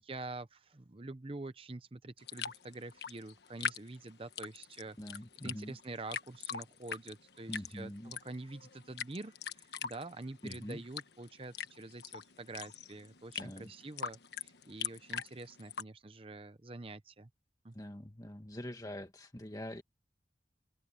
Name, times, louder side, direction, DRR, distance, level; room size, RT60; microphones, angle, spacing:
voice 1, 0.0-17.3 17.6-17.7, right 2 dB, 30° right, 0.8 m, -46 dB
sound 1, 2.2-15.8, left 7 dB, 70° left, 1.4 m, -42 dB
voice 2, 5.0-5.8 7.5-8.1 10.4-10.8 13.4-13.7 17.7-19.8, left 1 dB, 20° left, 1.7 m, -44 dB
head